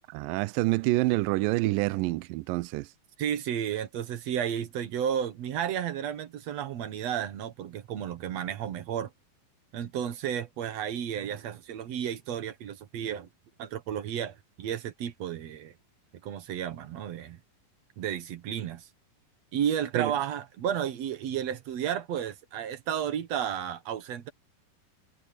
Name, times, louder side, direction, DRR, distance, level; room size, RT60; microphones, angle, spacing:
voice 1, 0.1-2.9 19.9-20.1, right 20 dB, 80° right, 2.2 m, -27 dB
voice 2, 3.2-9.1 9.7-13.3 13.6-15.7 16.2-17.4 18.0-18.9 19.5-24.3, right 9 dB, 60° right, 2.0 m, -32 dB
omnidirectional pair, 4.2 m